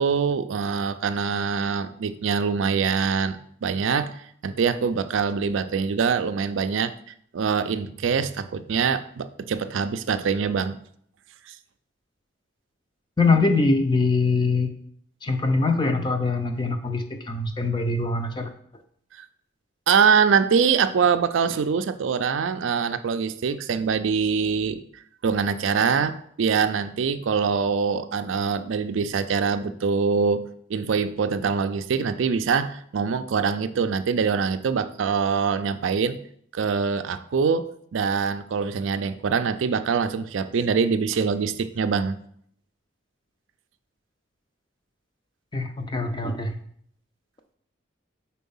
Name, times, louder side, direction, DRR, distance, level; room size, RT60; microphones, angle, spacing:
voice 1, 0.0-6.9 7.3-10.8 11.5-11.6 19.9-24.8 25.2-36.2 36.5-42.2, right 6 dB, 80° right, 11 dB, 0.4 m, -24 dB
voice 2, 13.2-14.7 15.2-18.5 45.5-46.6, left 3 dB, 25° left, 6 dB, 0.5 m, -23 dB
4.6 x 4.3 x 5.4 m, 0.65 s
head